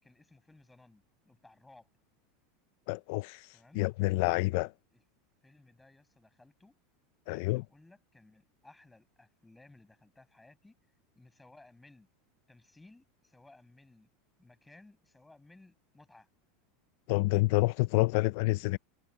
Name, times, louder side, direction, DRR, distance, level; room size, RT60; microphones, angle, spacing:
voice 1, 0.0-1.9 3.5-3.9 4.9-5.0 5.4-6.8 7.3-10.8 11.2-12.1 12.5-14.1 14.4-16.3 18.1-18.3, left 2 dB, 5° left, 7.3 m, -59 dB
voice 2, 2.9-4.7 7.3-7.6 17.1-18.8, left 22 dB, 45° left, 0.3 m, -28 dB
supercardioid pair, 180°, 0 cm